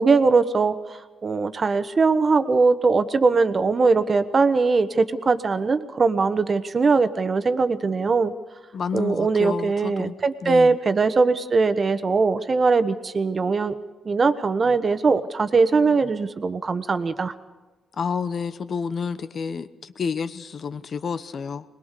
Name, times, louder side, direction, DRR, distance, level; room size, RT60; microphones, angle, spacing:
voice 1, 0.0-8.3 8.9-13.7 14.0-17.3, right 4 dB, 40° right, 10 dB, 1.2 m, -21 dB
voice 2, 8.7-10.1 10.4-10.8 17.9-21.6, left 6 dB, 55° left, 13 dB, 0.9 m, -29 dB
21.5 x 20.0 x 6.7 m, 1.2 s
cardioid pair, 70°, 0 cm